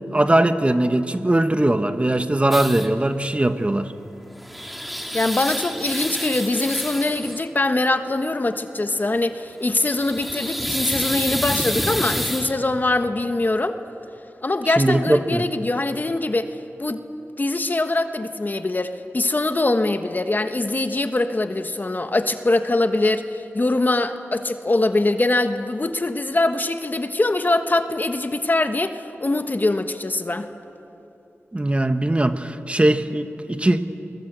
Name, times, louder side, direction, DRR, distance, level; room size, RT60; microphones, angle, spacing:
voice 1, 0.1-3.9 14.8-15.4 31.5-33.8, right 1 dB, 25° right, 9 dB, 1.2 m, -20 dB
sound 1, 2.5-2.9 4.2-7.5 9.7-12.5, equal, ahead, 2.2 m, -28 dB
voice 2, 5.1-13.8 14.4-16.5 16.8-17.0 17.4-30.5, left 2 dB, 40° left, 8 dB, 1.2 m, -23 dB
24.0 x 21.0 x 8.1 m, 2.8 s
cardioid pair, 55°, 5 cm